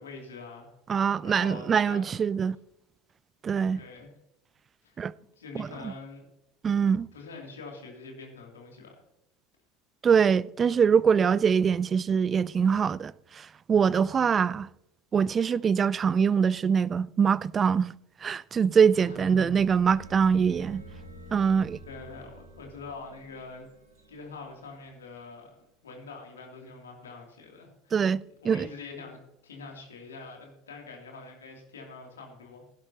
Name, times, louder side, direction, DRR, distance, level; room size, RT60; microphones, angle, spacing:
voice 1, 0.0-2.0 3.7-4.1 4.8-5.0 5.4-6.2 7.1-9.0 19.0-19.5 21.8-23.7 24.1-25.5 25.8-28.0 28.4-32.6, left 4 dB, 75° left, 2.9 m, -44 dB
voice 2, 0.9-2.6 3.4-3.8 5.0-5.1 5.5-5.9 6.6-7.1 10.0-14.7 15.1-17.9 18.2-20.8 21.3-21.8 27.9-28.7, right 6 dB, 30° right, 0.4 m, -24 dB
sound 1, 18.7-25.3, right 2 dB, 85° right, 3.1 m, -49 dB
16.5 x 11.0 x 2.9 m
figure-of-eight pair, 70°, 0 cm